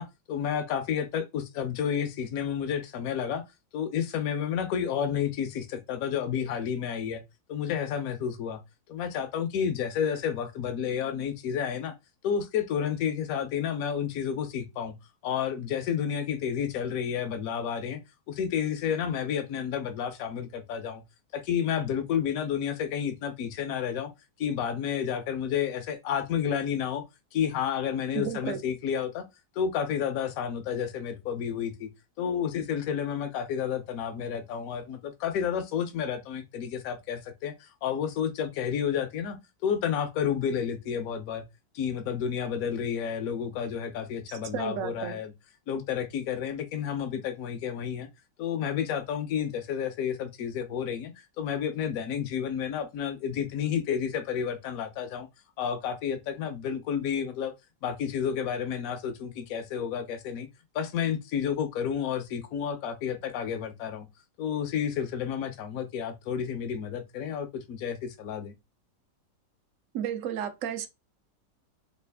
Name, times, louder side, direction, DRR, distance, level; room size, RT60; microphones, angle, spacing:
voice 1, 0.0-3.4 3.7-7.2 7.5-8.6 8.9-11.9 12.2-15.0 15.2-18.0 18.3-21.0 21.3-24.1 24.4-27.0 27.3-29.3 29.6-31.9 32.2-39.4 39.6-41.4 41.7-45.3 45.7-48.1 48.4-55.3 55.6-57.5 57.8-60.5 60.7-64.1 64.4-68.5, left 8 dB, 65° left, 0.9 m, -30 dB
voice 2, 28.1-28.6 44.3-45.2 69.9-70.9, right 9 dB, 70° right, 0.7 m, -33 dB
3.2 x 2.4 x 3.4 m
omnidirectional pair, 1.9 m